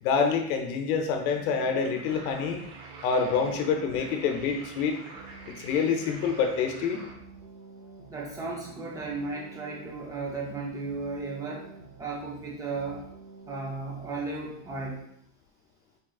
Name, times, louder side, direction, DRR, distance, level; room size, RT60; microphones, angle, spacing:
voice 1, 0.0-2.6 3.0-5.0 5.5-7.0, left 6 dB, 75° left, 4 dB, 0.7 m, -27 dB
sound 1, 1.3-14.9, right 5 dB, 25° right, 0.9 m, -49 dB
sound 2, 1.8-7.1, right 3 dB, 70° right, 1.2 m, -47 dB
voice 2, 8.1-11.7 12.0-13.0 13.5-15.0, right 3 dB, 10° right, -2 dB, 0.3 m, -35 dB
4.1 x 3.6 x 2.3 m, 0.71 s
supercardioid pair, 150°, 43 cm